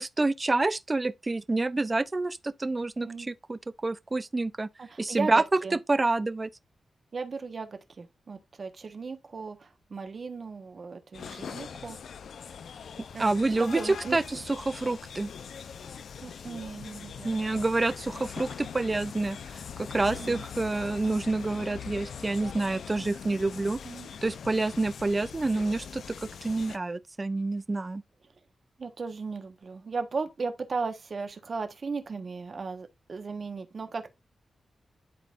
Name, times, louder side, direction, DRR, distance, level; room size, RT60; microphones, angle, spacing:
voice 1, 0.0-4.7 5.0-5.4 5.9-6.5 13.2-14.4 14.7-15.3 17.2-19.6 19.9-23.8 24.2-26.2 26.4-28.0, right 2 dB, 25° right, 0.5 m, -28 dB
voice 2, 4.8-5.8 7.1-12.0 13.1-13.3 13.6-14.4 16.2-17.3 20.1-20.4 23.8-24.1 28.8-34.1, right 4 dB, 45° right, 1.2 m, -36 dB
sound 1, 11.1-26.8, left 7 dB, 75° left, 0.5 m, -42 dB
11.5 x 4.0 x 2.5 m
wide cardioid pair, 125°, 0 cm